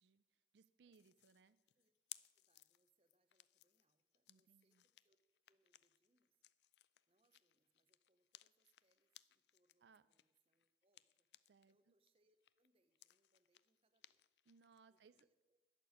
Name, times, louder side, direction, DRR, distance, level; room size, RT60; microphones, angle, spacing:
voice 1, 0.0-1.6 4.3-4.8 9.8-10.0 11.5-11.8 14.5-15.3, right 5 dB, 80° right, 14 dB, 0.4 m, -69 dB
sound 1, 0.9-11.7 12.1-15.2, left 16 dB, 75° left, 0.4 m, -64 dB
voice 2, 2.3-6.4 7.1-11.3 11.7-14.3 14.9-15.6, right 3 dB, 30° right, 11 dB, 0.7 m, -83 dB
11.0 x 6.8 x 9.5 m, 1.1 s
head